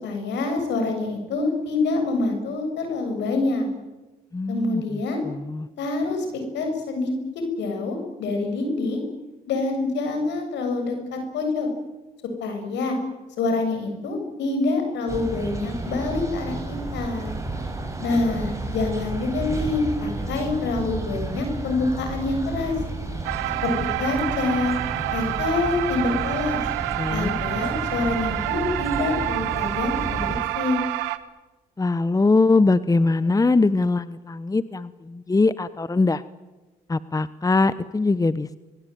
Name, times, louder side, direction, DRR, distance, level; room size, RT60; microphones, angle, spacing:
voice 1, 0.0-3.7 4.5-5.2 5.8-6.3 6.5-7.1 7.6-9.0 9.5-11.7 12.4-13.0 13.4-17.3 18.0-22.7 23.6-23.7 24.0-24.8 25.1-26.6 27.1-30.8, left 3 dB, 75° left, 5 dB, 7.6 m, -26 dB
voice 2, 4.3-4.8 5.2-5.7 27.0-27.3 31.8-36.2 36.9-38.6, left 3 dB, 20° left, 16 dB, 1.0 m, -22 dB
sound 1, 15.1-30.4, right 2 dB, 15° right, 6.8 m, -32 dB
sound 2, 23.2-31.2, right 17 dB, 85° right, 1.3 m, -28 dB
24.5 x 22.5 x 9.3 m, 1.2 s
supercardioid pair, 60°, 19 cm